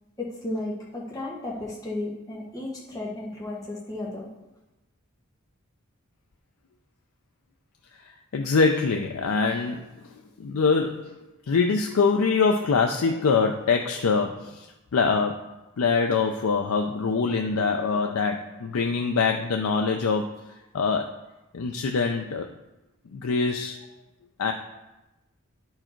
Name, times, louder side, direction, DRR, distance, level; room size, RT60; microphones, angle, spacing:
voice 1, 0.2-4.3, left 2 dB, 15° left, -4 dB, 1.4 m, -34 dB
voice 2, 8.1-11.2 11.5-15.4 15.8-20.3 20.7-21.1 21.5-22.5 23.1-23.8 24.4-24.5, left 4 dB, 85° left, 4 dB, 0.5 m, -24 dB
9.8 x 4.7 x 4.5 m, 1.0 s
head